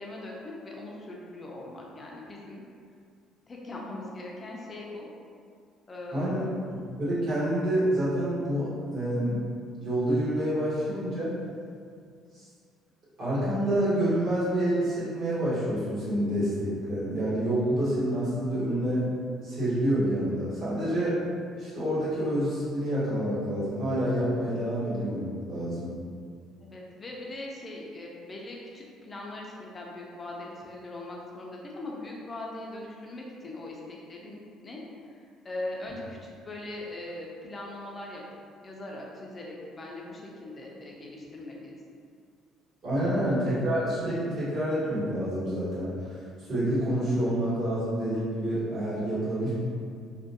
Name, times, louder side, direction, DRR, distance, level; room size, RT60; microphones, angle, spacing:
voice 1, 0.0-2.6 3.5-5.1 5.9-6.5 26.6-34.8 35.1-41.8 43.0-43.1, left 2 dB, 20° left, -2 dB, 0.4 m, -40 dB
voice 2, 6.1-9.4 9.8-11.3 12.3-12.4 13.2-19.1 19.4-21.2 21.6-25.9 42.8-49.5, right 1 dB, 40° right, -12 dB, 1.2 m, -28 dB
2.5 x 2.1 x 2.6 m, 2.2 s
cardioid pair, 150°, 0 cm